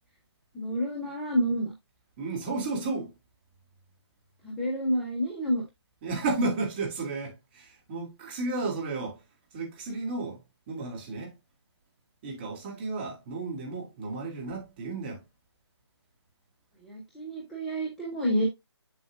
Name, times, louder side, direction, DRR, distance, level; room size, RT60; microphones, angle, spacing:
voice 1, 0.5-1.7 4.4-5.6 16.8-18.5, equal, ahead, 0.3 m, -29 dB
voice 2, 2.2-3.1 6.0-9.2 9.5-10.4 10.7-11.4 12.2-15.2, right 3 dB, 20° right, 2.0 m, -33 dB
7.1 x 6.8 x 2.3 m
figure-of-eight pair, 155°, 14 cm